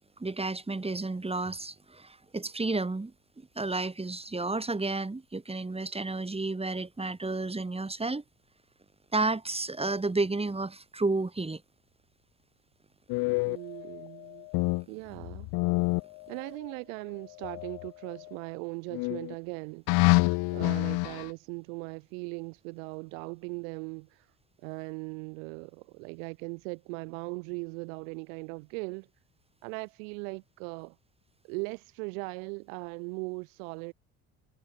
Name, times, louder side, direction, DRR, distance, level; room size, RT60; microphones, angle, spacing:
voice 1, 0.2-8.2 9.1-11.6, right 3 dB, 15° right, 4.8 m, -31 dB
sound 1, 13.1-14.8 15.1-16.7 17.4-18.3 18.9-19.3 19.9-21.3, left 27 dB, 55° left, 1.4 m, -28 dB
voice 2, 13.5-14.5 14.9-15.5 16.3-19.8 20.5-24.3 24.6-29.1 29.6-31.0 31.4-33.9, right 34 dB, 65° right, 2.8 m, -39 dB
figure-of-eight pair, 60°, 44 cm